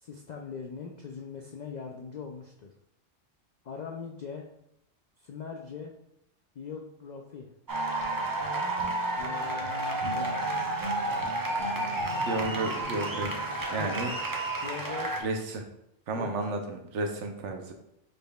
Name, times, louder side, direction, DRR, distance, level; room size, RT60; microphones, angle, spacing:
voice 1, 0.0-2.7 3.6-4.5 5.2-5.9 6.6-7.5 9.2-10.5 11.1-11.3 11.8-12.1 13.8-14.0 14.6-15.1 16.1-16.3, left 5 dB, 65° left, 0 dB, 0.4 m, -41 dB
sound 1, 7.7-15.2, right 2 dB, 35° right, 0.3 m, -31 dB
sound 2, 7.7-13.6, right 1 dB, 55° right, 1.3 m, -42 dB
voice 2, 12.3-13.3 13.6-14.1 15.2-15.6 16.1-17.7, right 2 dB, 80° right, 4 dB, 1.0 m, -32 dB
5.2 x 4.2 x 2.3 m, 0.78 s
omnidirectional pair, 1.2 m